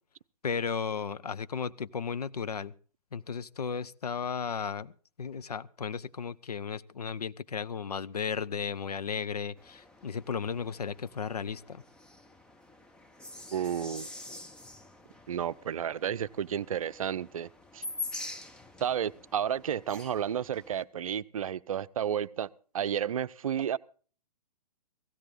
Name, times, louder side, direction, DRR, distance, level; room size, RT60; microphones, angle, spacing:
voice 1, 0.4-2.7 3.1-4.9 5.2-11.8, left 6 dB, 75° left, 0.7 m, -35 dB
sound 1, 9.6-20.8, left 3 dB, 5° left, 0.7 m, -46 dB
voice 2, 13.5-14.1 15.3-17.5 17.7-17.8 18.8-22.5 22.7-23.8, right 9 dB, 60° right, 0.6 m, -31 dB
16.5 x 16.0 x 3.8 m
figure-of-eight pair, 120°, 20 cm